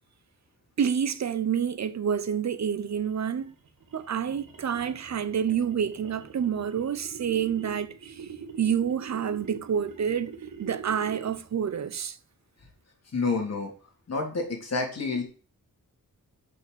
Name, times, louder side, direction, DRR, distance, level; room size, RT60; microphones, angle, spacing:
voice 1, 0.8-3.5 3.9-8.1 8.6-12.2, right 8 dB, 50° right, 0.8 m, -28 dB
sound 1, 2.9-11.6, right 6 dB, 70° right, 1.4 m, -44 dB
voice 2, 13.1-13.7 14.1-15.2, left 3 dB, 45° left, 3.3 m, -28 dB
6.9 x 5.8 x 6.8 m
wide cardioid pair, 175°, 34 cm